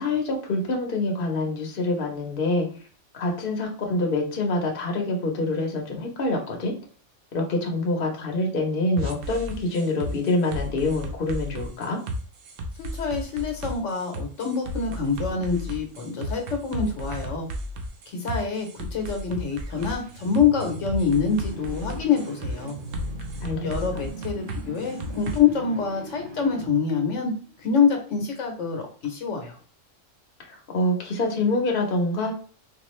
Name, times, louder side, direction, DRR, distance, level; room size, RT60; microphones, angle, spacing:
voice 1, 0.0-2.7 3.1-6.7 7.3-12.0 23.4-23.6 30.5-32.3, left 2 dB, 50° left, 1 dB, 1.0 m, -26 dB
sound 1, 9.0-25.4, equal, 85° right, 1.0 m, -34 dB
voice 2, 12.8-17.5 18.1-22.7 23.6-27.3 27.6-29.6, left 6 dB, 70° left, 3 dB, 1.1 m, -26 dB
sound 2, 19.5-27.6, right 2 dB, 50° right, 0.9 m, -40 dB
3.7 x 2.4 x 3.0 m, 0.42 s
omnidirectional pair, 1.3 m